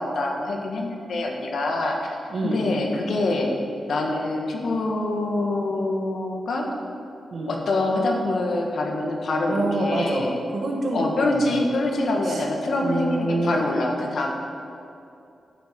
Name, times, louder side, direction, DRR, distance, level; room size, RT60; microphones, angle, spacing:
voice 1, 0.0-2.2 2.4-3.6 3.9-6.7 7.5-10.4 10.9-14.3, left 2 dB, 65° left, 1 dB, 1.5 m, -25 dB
voice 2, 2.3-2.6 7.3-7.6 9.5-11.0 11.3-11.6 12.2-12.4 12.8-13.6, right 2 dB, 55° right, 0 dB, 1.6 m, -26 dB
12.0 x 6.9 x 5.2 m, 2.7 s
wide cardioid pair, 145°, 0 cm